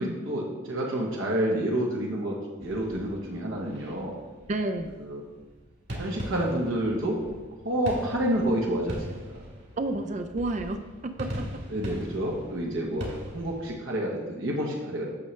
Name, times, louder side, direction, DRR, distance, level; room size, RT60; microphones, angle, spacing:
voice 1, 0.0-4.2 5.0-5.2 6.0-7.2 7.6-9.4 11.7-15.1, right 1 dB, 75° right, -2 dB, 1.1 m, -29 dB
sound 1, 2.6-13.8, equal, 55° right, 1.7 m, -41 dB
voice 2, 4.5-4.9 9.8-11.4, right 2 dB, 35° right, 8 dB, 0.4 m, -30 dB
8.5 x 6.1 x 3.3 m, 1.3 s
head